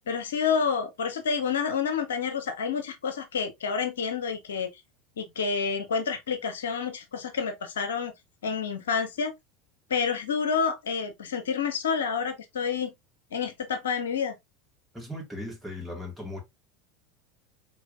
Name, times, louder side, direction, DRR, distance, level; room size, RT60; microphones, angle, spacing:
voice 1, 0.1-4.7 5.2-8.1 8.4-9.3 9.9-12.9 13.3-14.4, left 6 dB, 75° left, 0.8 m, -29 dB
voice 2, 14.9-16.4, left 1 dB, 5° right, 2.2 m, -37 dB
4.7 x 3.5 x 2.6 m
figure-of-eight pair, 80°, 0 cm